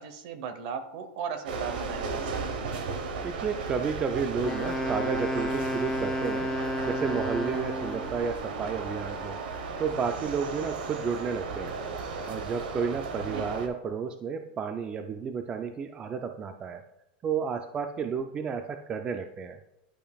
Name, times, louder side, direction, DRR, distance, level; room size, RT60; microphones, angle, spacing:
voice 1, 0.0-2.3 13.2-13.5, right 6 dB, 55° right, 10 dB, 0.9 m, -37 dB
sound 1, 1.5-13.7, right 4 dB, 90° right, 1.0 m, -35 dB
voice 2, 3.2-11.8 12.3-16.8 17.2-19.6, right 6 dB, 20° right, 6 dB, 0.4 m, -32 dB
Wind instrument woodwind instrument, 4.4-8.2, equal, 10° left, 0.7 m, -31 dB
11.5 x 5.1 x 2.3 m, 0.86 s
supercardioid pair, 150°, 5 cm